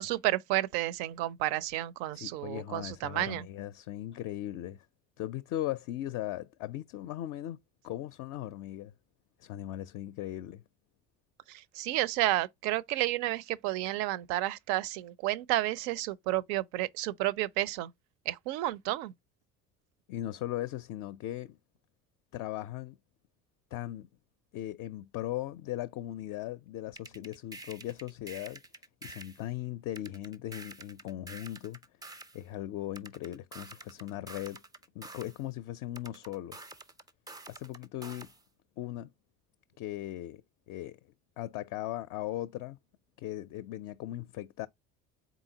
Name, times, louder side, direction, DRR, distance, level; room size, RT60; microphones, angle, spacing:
voice 1, 0.0-3.5 11.5-17.9 18.3-19.1, right 15 dB, 65° right, 0.5 m, -31 dB
voice 2, 2.1-4.8 5.2-8.9 9.4-10.6 20.1-21.6 22.3-23.0 23.7-24.1 24.5-28.6 29.0-31.8 32.3-34.6 34.9-36.6 37.5-38.3 38.8-39.1 39.8-40.4 40.7-41.0 41.4-42.8 43.2-44.7, left 14 dB, 50° left, 0.4 m, -38 dB
sound 1, 27.0-29.4 30.0-32.4 33.0-35.4 35.9-38.4, right 2 dB, 10° right, 0.4 m, -48 dB
3.9 x 3.7 x 2.7 m
hypercardioid pair, 65°, 38 cm